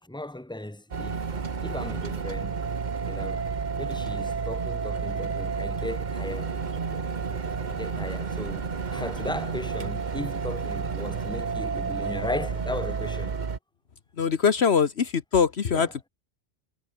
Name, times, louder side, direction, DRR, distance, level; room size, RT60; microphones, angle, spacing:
voice 1, 0.1-1.3 1.6-2.6 3.0-3.5 3.8-6.6 6.9-7.1 7.7-13.4 15.7-15.9, left 1 dB, 5° left, 1.9 m, -36 dB
sound 1, 0.9-13.6, right 5 dB, 40° right, 1.2 m, -31 dB
voice 2, 14.2-16.1, left 6 dB, 60° left, 1.4 m, -23 dB
omnidirectional pair, 1.2 m